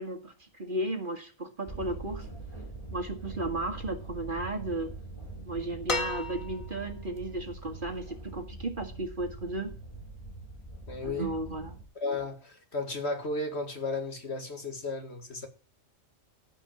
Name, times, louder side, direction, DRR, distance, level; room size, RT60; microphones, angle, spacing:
voice 1, 0.0-2.3 2.9-4.9 5.5-9.7 11.0-11.8, right 2 dB, 40° right, 2.1 m, -34 dB
sound 1, 1.7-11.8, right 2 dB, 20° left, 3.4 m, -43 dB
sound 2, 5.9-6.9 8.4-8.5, left 3 dB, 85° left, 3.2 m, -33 dB
voice 2, 10.9-11.3 12.0-15.5, left 3 dB, 55° left, 2.4 m, -34 dB
15.5 x 5.3 x 8.8 m
omnidirectional pair, 1.4 m